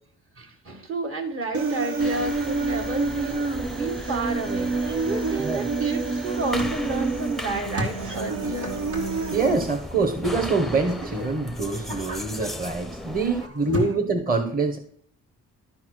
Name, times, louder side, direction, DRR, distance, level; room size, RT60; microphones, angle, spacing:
voice 1, 0.4-8.9 13.7-13.9, right 2 dB, 45° right, 3 dB, 1.6 m, -31 dB
Human voice, 1.5-9.5, right 4 dB, 90° right, 1.3 m, -28 dB
sound 1, 2.0-13.5, left 1 dB, ahead, 0.5 m, -37 dB
sound 2, 6.2-13.9, equal, 70° right, 2.6 m, -37 dB
voice 2, 9.3-14.8, right 3 dB, 30° right, 4 dB, 1.3 m, -25 dB
11.5 x 4.3 x 6.4 m, 0.63 s
cardioid pair, 90°, 30 cm